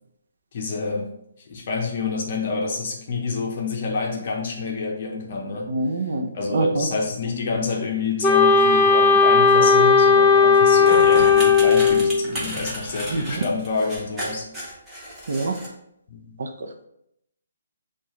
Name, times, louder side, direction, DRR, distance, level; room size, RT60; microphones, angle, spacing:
voice 1, 0.5-1.1 1.5-5.8 6.3-14.5 16.1-16.4, left 3 dB, 40° left, -1 dB, 0.7 m, -27 dB
voice 2, 5.7-6.9 13.1-13.2 15.3-15.5, right 2 dB, 60° right, 4 dB, 0.6 m, -25 dB
Wind instrument woodwind instrument, 8.2-12.2, left 5 dB, 15° left, 0.4 m, -15 dB
sound 1, 10.8-15.7, equal, 5° right, 0.8 m, -33 dB
6.8 x 2.4 x 3.0 m, 0.76 s
hypercardioid pair, 170°, 0 cm